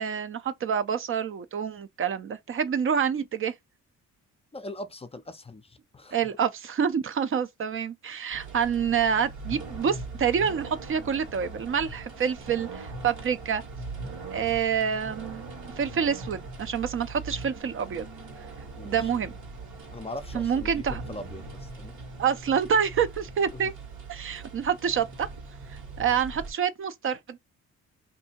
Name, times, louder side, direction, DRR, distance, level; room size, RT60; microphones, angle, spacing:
voice 1, 0.0-3.5 6.1-13.6 14.3-15.5 15.8-18.1 18.8-19.3 20.3-21.0 22.2-23.7 24.1-25.3 26.0-27.4, right 7 dB, 45° right, 0.5 m, -27 dB
voice 2, 4.5-6.2 18.8-19.2 19.9-22.0 23.5-23.7, left 2 dB, 20° left, 0.4 m, -41 dB
sound 1, 8.3-26.5, right 3 dB, 75° right, 1.5 m, -41 dB
2.7 x 2.6 x 4.2 m
cardioid pair, 90°, 30 cm